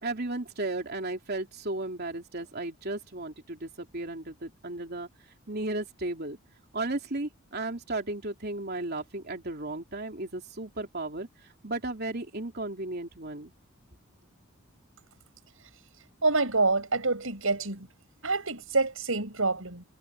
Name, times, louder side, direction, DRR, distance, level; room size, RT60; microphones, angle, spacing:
voice 1, 0.0-5.1 5.5-6.4 6.7-11.3 11.6-13.5, right 2 dB, 50° right, 3.3 m, -34 dB
voice 2, 16.2-17.9 18.2-19.8, right 3 dB, 75° right, 6.1 m, -27 dB
head